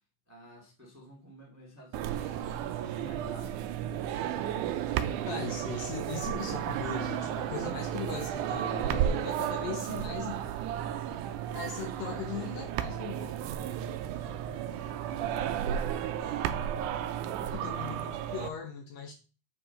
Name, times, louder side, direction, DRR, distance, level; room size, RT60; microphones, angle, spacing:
voice 1, 0.3-3.7 4.2-4.8 13.4-16.6, right 1 dB, 10° right, 1.2 m, -51 dB
sound 1, 1.9-18.5, right 10 dB, 85° right, 2.0 m, -33 dB
voice 2, 5.3-10.5 11.6-13.4 17.5-19.1, left 7 dB, 70° left, 1.8 m, -39 dB
7.5 x 4.8 x 3.8 m
omnidirectional pair, 3.6 m